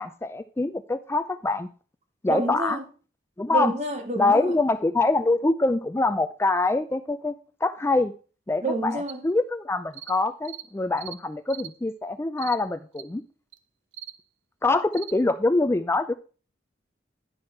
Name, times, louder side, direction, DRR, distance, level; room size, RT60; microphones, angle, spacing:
voice 1, 0.0-1.7 2.2-2.8 3.4-3.7 4.2-7.3 7.6-8.1 8.5-13.2 14.6-16.1, left 2 dB, 15° left, 0.4 m, -24 dB
voice 2, 2.3-2.8 3.5-4.6 8.6-9.2, right 2 dB, 40° right, 1.5 m, -28 dB
sound 1, 9.1-9.2 9.9-10.2 10.4-10.7 11.0-11.2 11.5-11.7 12.4-12.6 13.0-13.1 13.5-13.6 13.9-14.2 14.9-15.2, right 11 dB, 80° right, 0.8 m, -40 dB
10.5 x 6.2 x 4.5 m
head